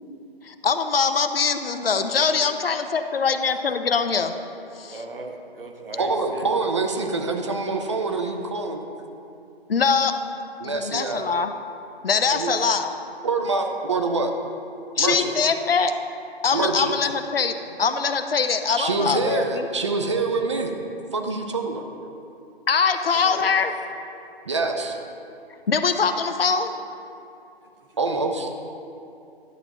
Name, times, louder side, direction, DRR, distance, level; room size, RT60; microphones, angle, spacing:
voice 1, 0.4-4.3 4.8-5.0 9.7-10.2 10.6-11.5 12.0-12.9 15.0-15.9 16.4-19.7 22.7-23.7 25.7-26.7, left 5 dB, 65° left, 8 dB, 0.6 m, -23 dB
voice 2, 4.8-6.6 17.7-17.8 22.1-22.2 23.2-23.6, right 2 dB, 60° right, 3 dB, 1.0 m, -38 dB
voice 3, 6.0-8.9 10.6-11.3 12.3-12.6 13.2-14.3 15.0-15.3 16.5-16.9 18.8-20.7 21.1-21.8 24.5-25.0 28.0-28.5, right 3 dB, 30° right, 4 dB, 0.5 m, -25 dB
11.0 x 7.6 x 2.8 m, 2.7 s
figure-of-eight pair, 140°, 31 cm